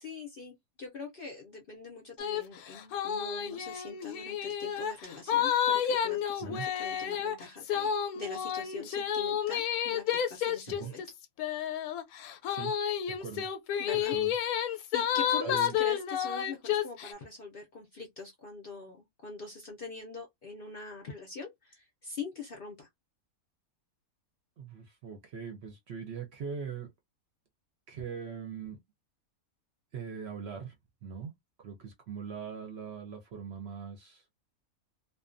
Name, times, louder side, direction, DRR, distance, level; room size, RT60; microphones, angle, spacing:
voice 1, 0.0-11.0 13.8-14.1 14.7-22.9, left 4 dB, 55° left, 0.6 m, -43 dB
sound 1, 2.2-2.4 2.7-17.1, left 9 dB, 85° left, 1.0 m, -31 dB
voice 2, 13.1-13.5 14.1-14.3 15.4-15.8 24.6-26.9 27.9-28.8 29.9-30.7 31.0-31.3 31.6-34.2, right 6 dB, 60° right, 0.7 m, -41 dB
2.5 x 2.2 x 2.4 m
omnidirectional pair, 1.5 m